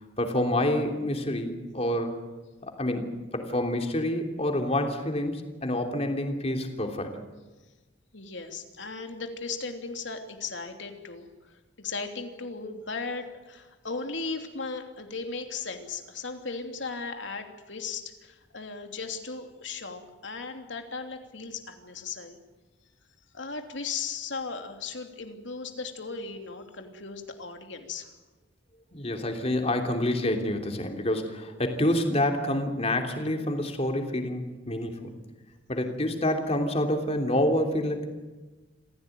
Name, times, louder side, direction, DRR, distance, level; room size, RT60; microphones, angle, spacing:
voice 1, 0.2-2.2 2.6-7.2 28.9-35.1 35.7-38.1, left 1 dB, 35° left, 4 dB, 3.2 m, -27 dB
voice 2, 8.1-22.4 23.3-28.1, left 4 dB, 75° left, 5 dB, 3.1 m, -37 dB
26.5 x 16.5 x 9.3 m, 1.2 s
head